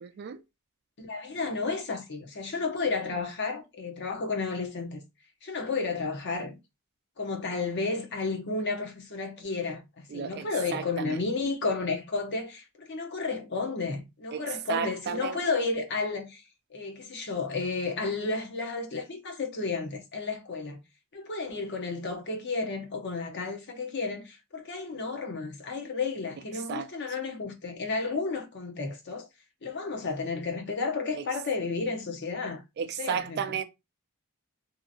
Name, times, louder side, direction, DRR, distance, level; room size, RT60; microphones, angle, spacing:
voice 1, 0.0-0.4 10.1-11.2 14.3-14.4 14.7-15.4 26.7-26.9 31.1-31.3 32.8-33.6, right 7 dB, 50° right, 0.3 m, -33 dB
voice 2, 1.0-5.0 5.4-6.6 7.2-16.4 16.7-20.8 21.1-29.3 29.6-32.6 33.0-33.6, left 4 dB, 55° left, 0.7 m, -32 dB
2.7 x 2.5 x 2.7 m
head